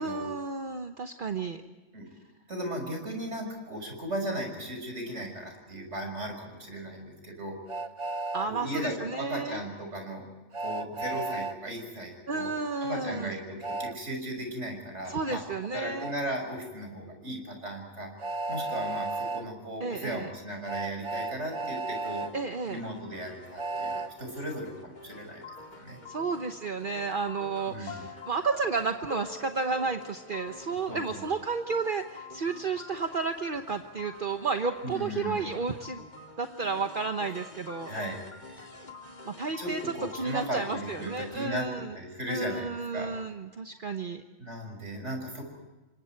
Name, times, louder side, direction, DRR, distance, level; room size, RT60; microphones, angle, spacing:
voice 1, 0.0-1.6 8.3-9.6 12.3-13.3 15.1-16.1 19.8-20.3 22.3-22.8 26.1-36.0 36.4-37.9 39.3-42.0 42.3-44.2, right 4 dB, 45° right, 6 dB, 1.2 m, -32 dB
voice 2, 2.5-7.6 8.5-10.3 10.6-12.5 12.8-15.4 15.7-18.1 18.5-22.3 22.7-25.4 25.7-26.0 27.7-28.1 30.9-31.2 34.8-35.5 37.8-38.2 38.5-38.6 39.6-41.7 41.9-42.7 42.9-43.1 44.4-45.5, right 1 dB, 70° right, 3 dB, 6.3 m, -36 dB
Train, 7.7-8.5 10.5-11.6 13.6-14.0 16.0-16.2 18.2-19.4 20.7-22.3 23.6-24.1, right 3 dB, 30° right, 0.6 m, -33 dB
sound 1, 22.0-41.4, left 3 dB, 35° left, 2.4 m, -47 dB
29.0 x 25.0 x 4.6 m, 1.1 s
omnidirectional pair, 1.3 m